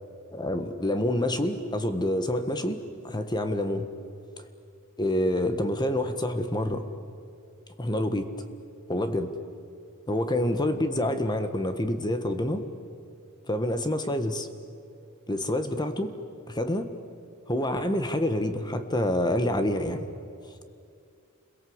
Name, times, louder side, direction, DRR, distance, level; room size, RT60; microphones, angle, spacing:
voice 1, 0.3-2.8 3.0-3.9 5.0-6.8 7.8-8.3 8.9-9.3 10.1-12.6 13.5-14.5 15.3-16.1 16.5-16.9 17.5-20.1, left 1 dB, 20° left, 8 dB, 1.5 m, -27 dB
29.0 x 22.5 x 8.1 m, 2.3 s
head